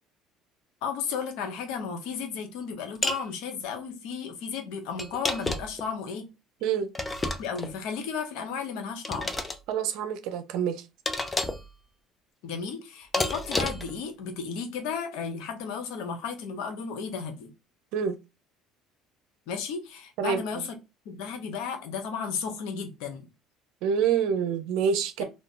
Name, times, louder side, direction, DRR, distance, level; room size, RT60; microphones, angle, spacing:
voice 1, 0.8-6.3 7.4-9.3 12.4-17.5 19.5-20.7 21.1-23.3 25.2-25.3, left 6 dB, 75° left, 0.8 m, -34 dB
sound 1, 3.0-3.3 5.0-5.8 6.9-7.7 9.0-9.6 11.1-11.7 13.1-13.9, left 2 dB, 20° left, 0.6 m, -30 dB
voice 2, 6.6-6.9 9.7-10.8 17.9-18.2 20.2-20.7 23.8-25.2, right 7 dB, 70° right, 0.6 m, -27 dB
2.4 x 2.3 x 3.7 m
supercardioid pair, 75°, 0 cm